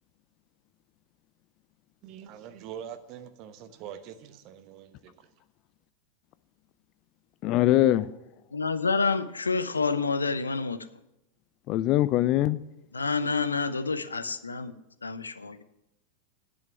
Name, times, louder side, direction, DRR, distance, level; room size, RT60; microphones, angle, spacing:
voice 1, 2.0-5.3, right 9 dB, 40° right, 1.0 m, -44 dB
voice 2, 7.4-8.1 11.7-12.6, left 14 dB, 40° left, 0.4 m, -22 dB
voice 3, 8.5-10.8 12.9-14.7 15.0-15.6, left 4 dB, 75° left, 0.7 m, -28 dB
10.5 x 6.4 x 8.8 m
figure-of-eight pair, 90°, 0 cm